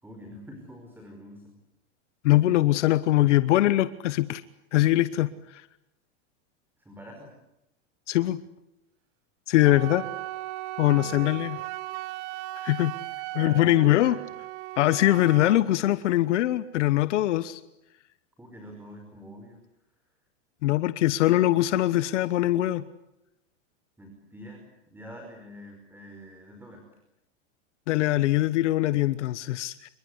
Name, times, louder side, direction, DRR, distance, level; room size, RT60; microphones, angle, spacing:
voice 1, 0.0-1.6 6.8-7.3 9.7-10.0 10.8-11.3 13.4-14.2 18.4-19.6 24.0-26.8, equal, 5° right, 3 dB, 5.2 m, -46 dB
voice 2, 2.2-4.4 4.7-5.6 8.1-8.4 9.5-10.0 10.8-11.6 12.6-12.9 13.3-14.2 14.8-17.6 20.6-22.8 27.9-29.9, left 15 dB, 75° left, 14 dB, 1.1 m, -22 dB
Wind instrument woodwind instrument, 9.6-15.7, right 18 dB, 45° right, 0.9 m, -37 dB
27.0 x 23.5 x 8.0 m, 0.86 s
supercardioid pair, 135°, 36 cm